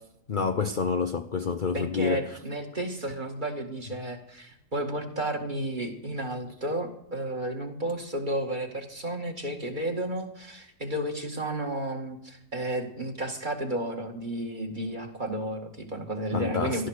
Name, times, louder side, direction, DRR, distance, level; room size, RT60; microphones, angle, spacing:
voice 1, 0.3-2.4 16.3-16.9, left 5 dB, 60° left, 0.5 m, -28 dB
voice 2, 1.7-16.9, right 1 dB, 25° right, 2.1 m, -32 dB
15.0 x 12.5 x 6.5 m
omnidirectional pair, 1.9 m